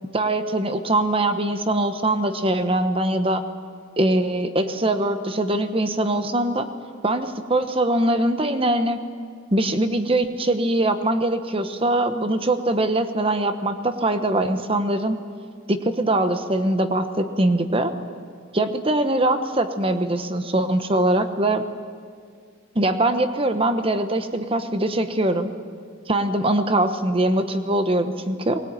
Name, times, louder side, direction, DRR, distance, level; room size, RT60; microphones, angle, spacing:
voice 1, 0.1-3.4 4.0-6.7 7.0-9.0 9.5-15.2 15.7-17.9 18.5-21.6 22.7-25.5 26.1-28.6, right 1 dB, 25° right, 9 dB, 1.1 m, -22 dB
21.0 x 19.5 x 9.0 m, 2.1 s
head